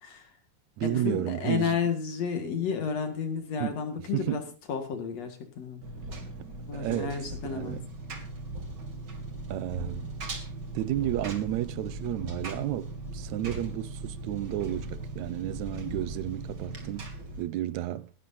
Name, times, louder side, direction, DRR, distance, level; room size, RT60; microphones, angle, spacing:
voice 1, 0.0-0.3 0.8-4.4 4.7-5.8 6.7-7.8 15.7-15.9, left 6 dB, 60° left, 2.9 m, -32 dB
voice 2, 0.8-1.8 3.6-3.8 4.1-4.5 6.7-7.9 9.5-10.1 10.7-17.1 17.4-18.1, right 14 dB, 75° right, 2.0 m, -32 dB
Engine, 5.8-17.4, right 2 dB, 35° right, 2.8 m, -38 dB
19.5 x 12.0 x 2.7 m
omnidirectional pair, 3.4 m